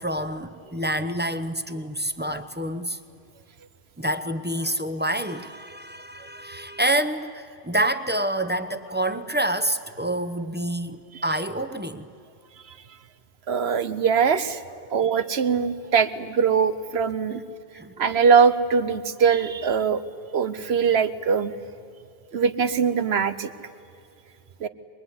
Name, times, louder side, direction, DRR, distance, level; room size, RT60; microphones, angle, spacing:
voice 1, 0.0-3.0 4.0-12.1 14.8-15.0 17.7-17.9, right 1 dB, 10° right, 9 dB, 0.9 m, -27 dB
voice 2, 13.5-14.6 14.9-17.4 18.0-20.0 20.3-21.5 22.3-23.5 24.6-24.7, right 6 dB, 85° right, 12 dB, 1.3 m, -21 dB
24.0 x 21.5 x 9.7 m, 2.4 s
omnidirectional pair, 1.0 m